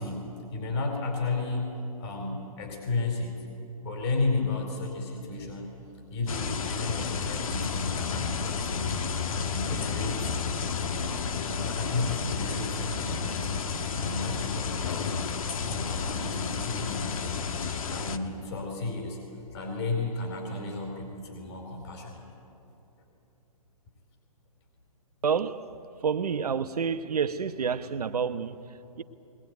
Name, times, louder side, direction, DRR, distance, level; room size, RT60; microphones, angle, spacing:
voice 1, 0.0-3.4 3.8-5.8 6.1-8.9 9.5-10.3 11.4-13.7 13.9-15.4 15.7-17.4 17.9-19.2 19.5-22.2, left 3 dB, 45° left, 4.4 m, -33 dB
sound 1, 6.3-18.2, left 5 dB, 60° left, 1.4 m, -31 dB
voice 2, 25.2-25.8 26.0-29.0, right 6 dB, 80° right, 1.1 m, -29 dB
21.5 x 20.0 x 9.4 m
hypercardioid pair, 145°, 20 cm